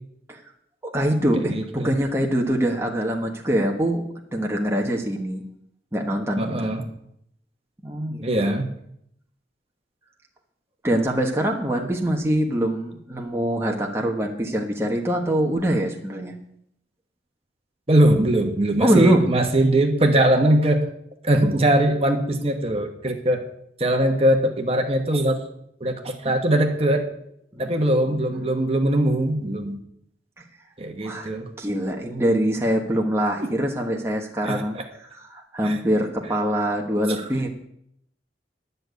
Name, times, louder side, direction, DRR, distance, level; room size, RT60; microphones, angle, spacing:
voice 1, 0.8-4.0 4.3-5.4 5.9-6.5 7.8-8.2 10.8-16.3 18.8-19.3 27.5-27.6 31.0-31.3 31.6-37.5, right 1 dB, 15° right, 0 dB, 1.2 m, -23 dB
voice 2, 1.5-1.9 6.4-6.9 8.2-8.7 17.9-20.9 21.2-23.4 23.8-25.4 25.8-27.0 27.6-29.8 30.8-31.5 34.4-34.8 35.6-35.8, right 1 dB, 35° right, 4 dB, 1.2 m, -21 dB
10.5 x 6.7 x 9.2 m, 0.74 s
head